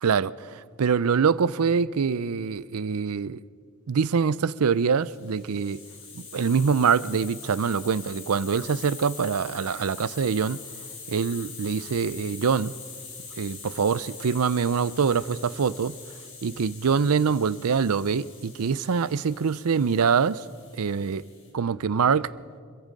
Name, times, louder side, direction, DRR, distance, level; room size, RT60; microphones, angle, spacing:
voice 1, 0.0-3.4 3.9-5.8 6.1-10.6 11.1-12.7 13.4-15.9 16.4-20.4 20.7-21.2 21.5-22.3, right 6 dB, 80° right, 0.5 m, -24 dB
Hiss, 4.8-21.5, left 5 dB, 60° left, 5.8 m, -44 dB
26.5 x 22.0 x 5.3 m
head